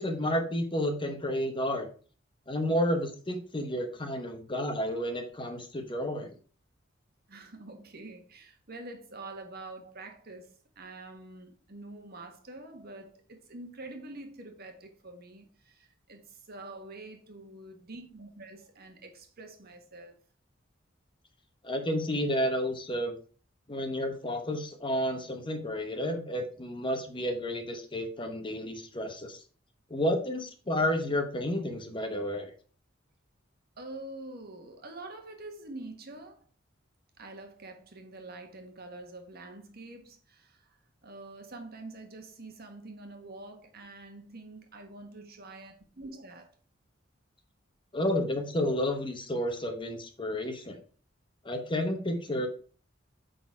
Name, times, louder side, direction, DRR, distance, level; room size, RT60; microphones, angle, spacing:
voice 1, 0.0-1.9 2.5-6.3 21.6-23.1 23.7-29.4 29.9-32.5 47.9-50.8 51.4-52.5, equal, 25° left, 1.0 m, -31 dB
voice 2, 7.3-20.2 33.8-36.4 37.2-46.5, right 2 dB, 55° right, 1.5 m, -46 dB
8.5 x 4.0 x 4.8 m
head